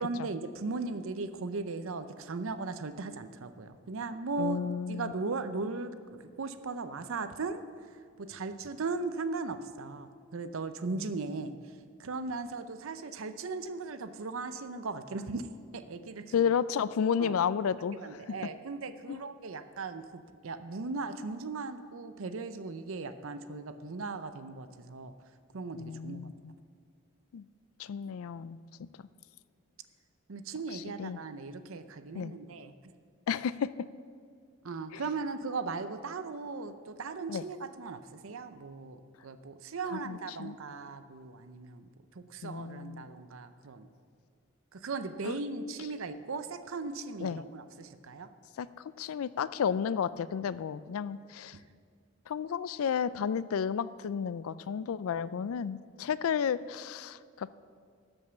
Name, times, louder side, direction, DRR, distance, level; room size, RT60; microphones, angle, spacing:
voice 1, 0.0-4.6 4.9-7.6 8.2-11.5 12.0-15.5 15.7-16.3 17.2-17.4 17.9-25.1 25.5-26.2 30.3-32.7 34.6-41.9 42.1-43.9 44.7-48.3, right 3 dB, 65° right, 10 dB, 0.6 m, -38 dB
voice 2, 4.4-5.1 10.9-11.1 16.3-18.3 19.1-19.2 25.7-26.6 27.3-27.4 27.8-28.9 30.7-31.2 32.1-32.3 33.3-33.7 34.9-35.0 37.3-37.4 39.9-40.6 42.4-43.1 45.2-45.4 47.2-47.4 48.6-51.6 52.3-57.5, left 7 dB, 75° left, 17 dB, 0.3 m, -32 dB
12.5 x 5.4 x 6.9 m, 2.2 s
head